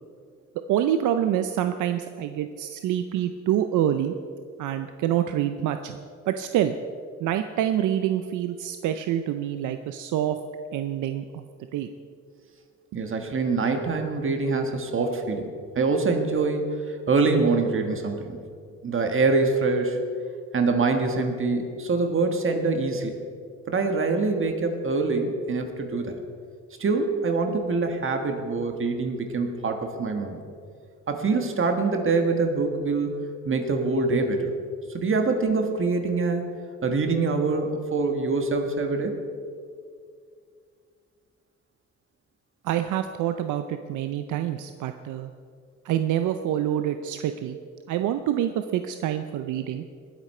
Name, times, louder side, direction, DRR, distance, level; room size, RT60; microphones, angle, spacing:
voice 1, 0.7-4.1 4.6-6.0 6.3-6.7 7.2-10.4 10.7-11.4 11.7-11.9 42.6-45.3 45.8-47.6 47.9-49.8, right 11 dB, 85° right, 9 dB, 0.6 m, -26 dB
voice 2, 12.9-15.5 15.7-18.4 18.8-20.0 20.5-23.1 23.6-26.2 26.8-30.4 31.1-34.5 34.9-36.5 36.8-39.2, right 3 dB, 45° right, 5 dB, 1.5 m, -25 dB
20.0 x 8.3 x 4.3 m, 2.2 s
cardioid pair, 90°, 30 cm